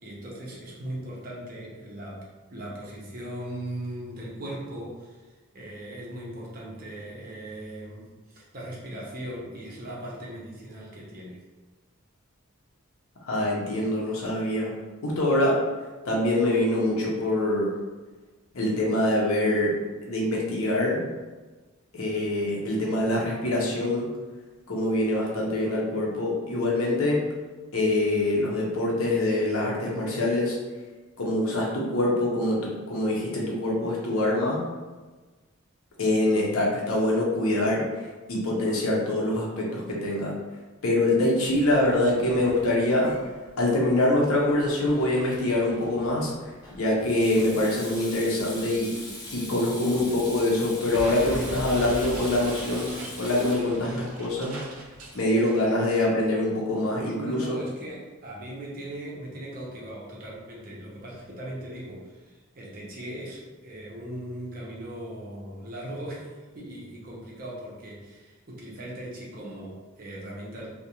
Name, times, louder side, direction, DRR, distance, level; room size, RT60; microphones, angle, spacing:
voice 1, 0.0-2.3 2.5-11.4 23.0-23.3 57.0-70.7, right 1 dB, 40° right, -4 dB, 0.6 m, -39 dB
voice 2, 13.2-14.7 15.0-15.6 16.0-17.7 18.5-19.8 20.0-21.0 21.9-24.1 24.7-27.2 27.7-30.6 31.2-34.6 36.0-37.8 38.3-40.3 40.8-43.1 43.6-48.9 49.3-54.6 55.1-57.6, left 1 dB, 70° left, -3 dB, 0.6 m, -24 dB
Sink (filling or washing), 41.4-55.1, left 1 dB, 15° left, 0.4 m, -43 dB
Explosion, 50.9-55.7, right 1 dB, 85° right, 0.5 m, -39 dB
2.4 x 2.1 x 2.8 m, 1.3 s
head